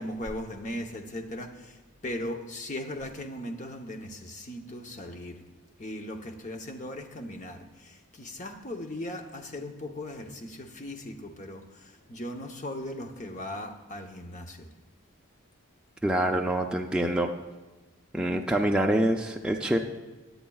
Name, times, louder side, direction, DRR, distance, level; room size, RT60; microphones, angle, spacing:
voice 1, 0.0-5.4 5.8-14.7, left 1 dB, 35° left, 4 dB, 0.9 m, -38 dB
voice 2, 16.0-17.3 18.1-19.8, right 1 dB, 5° right, 1 dB, 0.4 m, -25 dB
17.5 x 10.0 x 2.4 m, 1.2 s
head